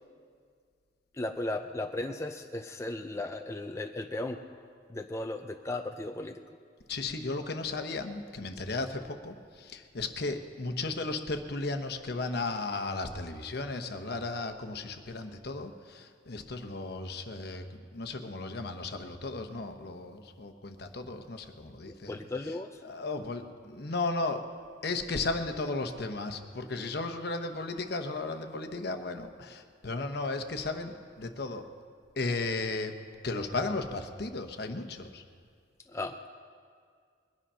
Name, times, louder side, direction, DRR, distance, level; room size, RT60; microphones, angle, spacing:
voice 1, 1.1-4.4 4.9-6.4 21.9-22.8 35.9-36.3, left 2 dB, 15° left, 5 dB, 0.4 m, -36 dB
voice 2, 6.9-17.6 17.9-22.2 22.8-24.5 24.8-31.6 32.2-33.0 33.2-35.2, left 3 dB, 60° left, 6 dB, 1.0 m, -35 dB
21.0 x 10.5 x 5.6 m, 2.1 s
head